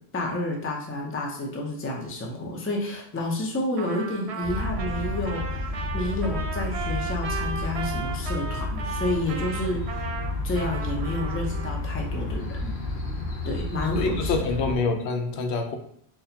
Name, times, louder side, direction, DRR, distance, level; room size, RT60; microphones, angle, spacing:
voice 1, 0.1-10.0 10.4-12.7 13.5-14.4, left 1 dB, 15° left, -1 dB, 0.4 m, -30 dB
Trumpet, 3.8-11.8, right 6 dB, 90° right, 0.9 m, -36 dB
sound 1, 4.4-14.8, left 2 dB, 60° left, 0.7 m, -31 dB
voice 2, 13.9-15.8, left 3 dB, 85° left, 5 dB, 0.9 m, -26 dB
4.1 x 2.3 x 2.7 m, 0.67 s
omnidirectional pair, 1.1 m